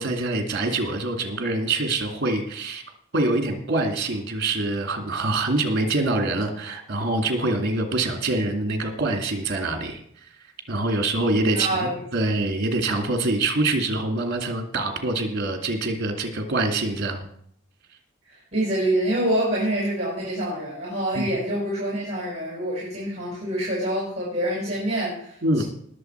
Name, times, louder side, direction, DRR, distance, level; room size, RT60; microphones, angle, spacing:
voice 1, 0.0-2.8 3.1-10.0 10.7-17.3 21.2-21.3 25.4-25.6, right 2 dB, 55° right, 4 dB, 2.4 m, -25 dB
voice 2, 11.5-12.3 18.5-25.6, right 1 dB, 30° right, -5 dB, 5.0 m, -26 dB
20.0 x 7.2 x 4.6 m, 0.66 s
head